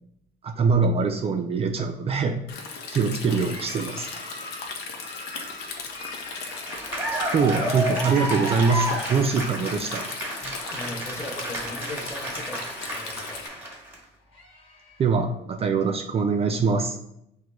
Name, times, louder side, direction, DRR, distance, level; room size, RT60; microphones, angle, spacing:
voice 1, 0.4-2.4 2.9-4.1 7.3-10.0 15.0-17.0, right 5 dB, 35° right, 4 dB, 0.3 m, -23 dB
Stream, 2.5-13.5, left 4 dB, 80° left, 0.7 m, -38 dB
sound 1, 3.3-8.4 8.7-9.5 9.9-10.9 11.1-12.3 12.7-13.7 14.2-15.2, left 2 dB, 35° left, 1.2 m, -45 dB
voice 2, 3.3-3.7 10.7-13.5, left 1 dB, 15° left, 3 dB, 0.7 m, -39 dB
Cheering / Applause, 6.4-13.9, right 1 dB, 10° right, 1.2 m, -31 dB
6.3 x 2.2 x 2.9 m, 0.79 s
cardioid pair, 110°, 17 cm